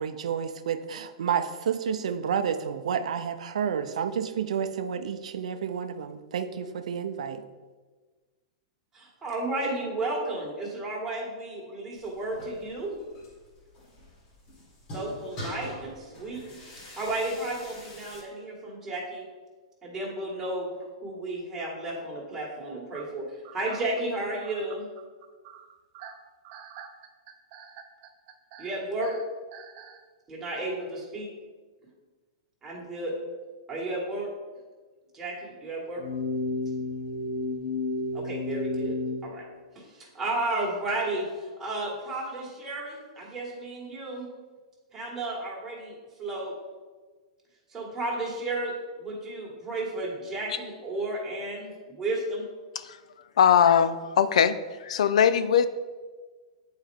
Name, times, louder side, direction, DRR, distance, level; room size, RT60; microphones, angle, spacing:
voice 1, 0.0-7.4, right 7 dB, 85° right, 10 dB, 0.5 m, -30 dB
voice 2, 8.9-13.0 14.9-16.4 16.7-19.2 19.8-23.3 23.5-24.9 28.6-29.2 30.3-31.3 32.6-33.1 33.7-34.3 35.1-36.0 38.1-39.0 39.2-39.4 39.7-44.3 44.9-46.5 47.7-52.4, right 2 dB, 10° right, -4 dB, 1.7 m, -33 dB
sound 1, 11.9-18.2, left 1 dB, 35° left, 1.9 m, -44 dB
sound 2, 22.9-30.0, right 8 dB, 40° right, 0.6 m, -47 dB
sound 3, 36.0-39.2, left 3 dB, 65° left, 0.8 m, -31 dB
voice 3, 53.4-55.7, left 8 dB, 80° left, 12 dB, 0.4 m, -21 dB
8.2 x 4.4 x 3.5 m, 1.4 s
hypercardioid pair, 150°, 3 cm